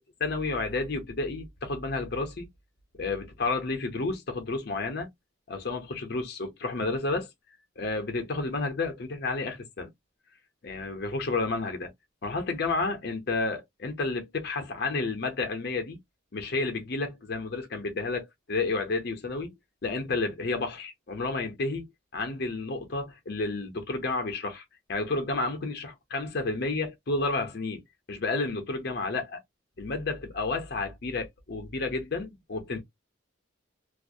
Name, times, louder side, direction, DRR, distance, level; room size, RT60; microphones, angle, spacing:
voice 1, 0.2-2.5 3.0-5.1 5.5-7.3 7.8-9.9 10.6-11.9 12.2-16.0 16.3-19.5 19.8-21.9 22.1-24.6 24.9-27.8 28.1-29.4 29.8-32.8, left 3 dB, 50° left, 0.6 m, -31 dB
2.3 x 2.0 x 2.6 m
head